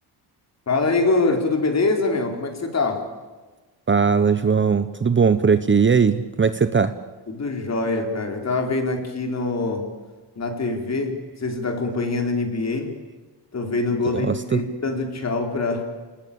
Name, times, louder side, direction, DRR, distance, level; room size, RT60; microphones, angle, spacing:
voice 1, 0.7-3.1 7.3-9.9 10.4-13.0 13.5-15.8, left 3 dB, 40° left, 4 dB, 4.4 m, -24 dB
voice 2, 3.9-6.9 14.1-14.6, right 5 dB, 25° right, 11 dB, 1.0 m, -19 dB
29.0 x 19.0 x 8.7 m, 1.3 s
cardioid pair, 125°, 42 cm